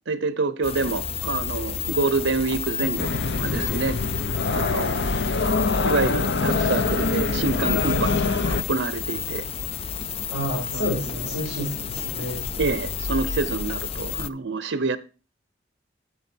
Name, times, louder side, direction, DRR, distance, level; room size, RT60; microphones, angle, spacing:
voice 1, 0.1-4.0 4.5-5.2 5.8-9.4 10.7-10.9 11.1-11.3 12.5-15.0, right 3 dB, 80° right, 0.8 m, -27 dB
sound 1, 0.6-14.3, left 7 dB, 30° left, 0.4 m, -31 dB
sound 2, 3.0-8.6, left 3 dB, 65° left, 0.8 m, -24 dB
voice 2, 10.3-12.5, equal, 85° left, 4.6 m, -30 dB
9.1 x 8.3 x 4.4 m
head